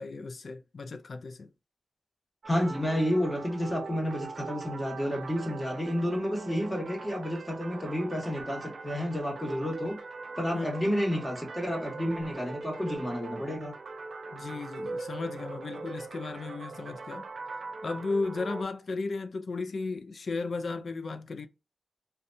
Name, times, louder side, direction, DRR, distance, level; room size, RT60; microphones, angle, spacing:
voice 1, 0.0-1.5 10.5-10.7 14.3-17.3 17.8-21.5, left 3 dB, 65° left, 0.4 m, -35 dB
sound 1, 2.4-18.6, right 3 dB, 75° right, 0.4 m, -41 dB
voice 2, 2.5-10.0 10.4-13.7, equal, 20° left, 1.1 m, -30 dB
2.6 x 2.2 x 2.6 m
cardioid pair, 50°, 0 cm